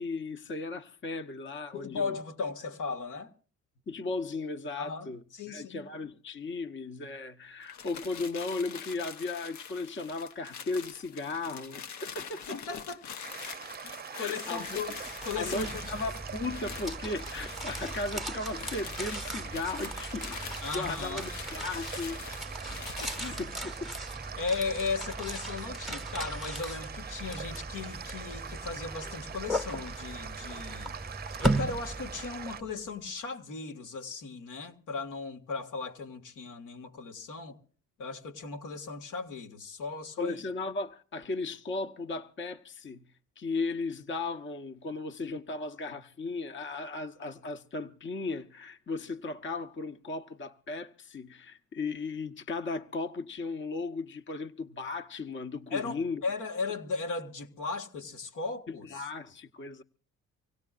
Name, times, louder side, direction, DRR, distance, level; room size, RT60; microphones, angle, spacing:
voice 1, 0.0-2.2 3.9-12.4 14.2-14.8 15.4-20.4 20.7-22.2 23.2-23.9 40.2-43.0 43.4-56.2 58.7-59.8, left 3 dB, 40° left, 1.0 m, -36 dB
voice 2, 1.7-3.3 4.8-5.9 12.5-13.0 14.2-16.0 20.6-21.2 23.0-23.4 24.4-31.0 31.4-37.6 38.0-40.4 55.7-59.1, left 4 dB, 85° left, 1.9 m, -36 dB
sound 1, 7.6-23.4, left 7 dB, 70° left, 1.1 m, -44 dB
sound 2, 13.2-32.6, right 7 dB, 30° right, 0.6 m, -43 dB
sound 3, 14.7-32.7, right 1 dB, ahead, 1.1 m, -38 dB
25.5 x 17.0 x 2.5 m
cardioid pair, 90°, 30 cm